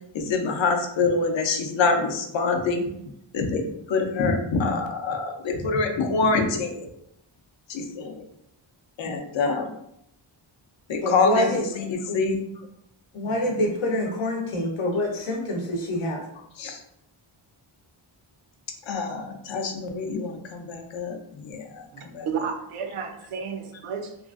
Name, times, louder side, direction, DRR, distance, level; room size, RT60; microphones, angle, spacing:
voice 1, 0.1-2.8 3.3-6.9 7.7-8.3 9.0-9.7 10.9-12.4 13.2-13.7 16.6-16.8 18.8-22.3, left 4 dB, 65° left, 0.5 m, -26 dB
voice 2, 11.0-11.6 12.1-12.2 13.1-16.2, left 1 dB, 90° left, 0.8 m, -26 dB
voice 3, 21.9-24.2, right 6 dB, 80° right, 0.6 m, -32 dB
3.0 x 2.4 x 2.4 m
wide cardioid pair, 175°, 50 cm